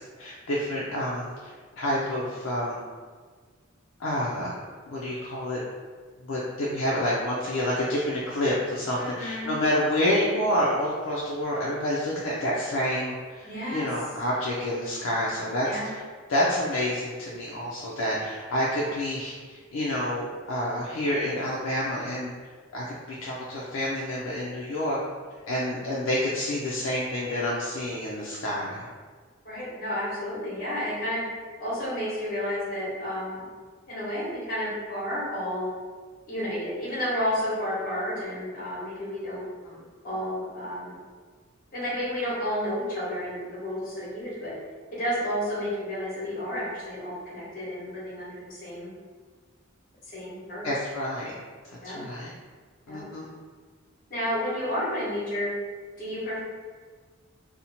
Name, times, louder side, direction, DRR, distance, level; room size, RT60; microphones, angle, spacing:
voice 1, 0.2-2.9 4.0-4.5 4.9-5.6 6.2-15.9 16.3-22.3 22.7-25.0 25.5-28.9 39.7-39.8 50.6-51.3 51.7-52.3 52.9-53.3, left 1 dB, 75° left, -6 dB, 0.4 m, -28 dB
voice 2, 9.0-9.5 13.4-13.9 15.6-15.9 29.4-31.2 31.6-33.5 33.9-35.7 36.3-39.4 40.0-41.0 41.7-44.5 44.9-48.9 50.1-50.7 51.8-52.0 52.9-53.0 54.1-55.5 56.0-56.4, equal, 45° left, -7 dB, 1.0 m, -31 dB
2.6 x 2.0 x 2.8 m, 1.5 s
head